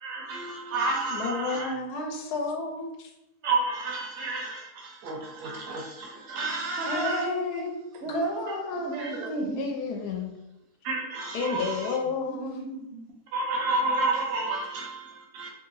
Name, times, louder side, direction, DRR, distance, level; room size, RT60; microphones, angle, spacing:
voice 1, 0.0-1.7 2.0-2.1 3.4-7.3 8.9-9.3 10.8-12.0 13.3-15.5, right 3 dB, 85° right, -1 dB, 1.3 m, -30 dB
voice 2, 1.1-3.1 6.9-7.8 8.1-9.0 9.6-10.3 11.3-12.6, left 4 dB, 90° left, 2 dB, 1.2 m, -31 dB
voice 3, 6.8-8.4 8.7-9.7 10.2-10.6 12.1-13.2, right 3 dB, 60° right, 2 dB, 0.7 m, -36 dB
3.3 x 2.8 x 2.6 m, 0.90 s
omnidirectional pair, 1.7 m